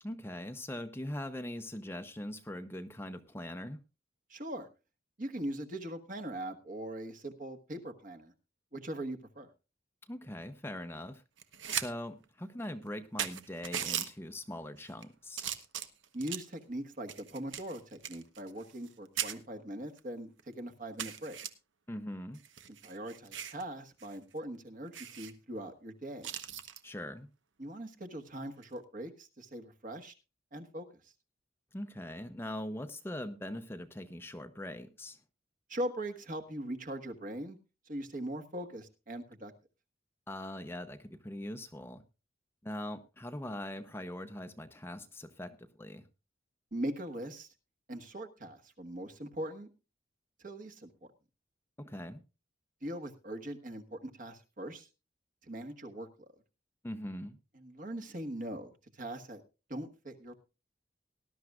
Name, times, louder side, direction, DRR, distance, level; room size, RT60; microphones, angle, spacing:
voice 1, 0.0-3.8 10.1-11.2 11.7-15.5 21.9-22.4 26.8-27.3 31.7-35.2 40.3-42.0 42.6-46.1 51.8-52.2 56.8-57.4, left 1 dB, 10° left, 9 dB, 0.7 m, -41 dB
voice 2, 4.3-4.7 5.2-8.3 8.7-9.5 16.1-21.4 22.8-26.4 27.6-30.1 30.5-30.9 35.7-37.6 37.9-39.5 46.7-47.5 47.9-49.7 50.4-51.1 52.8-54.9 55.4-56.3 57.6-59.4 59.7-60.3, right 1 dB, 45° right, 7 dB, 1.5 m, -41 dB
sound 1, 11.4-11.9 12.2-12.3 12.9-13.0 13.2-14.1 14.8-15.0 15.4-16.5 17.1-18.9 19.2-19.3 20.0-20.1 20.4-20.5 21.0-21.5 22.3-23.6 24.0-24.2 24.4-24.5 24.9-25.3 26.2-26.8 28.5-28.8, right 9 dB, 80° right, 1.1 m, -38 dB
19.0 x 12.0 x 2.4 m, 0.29 s
head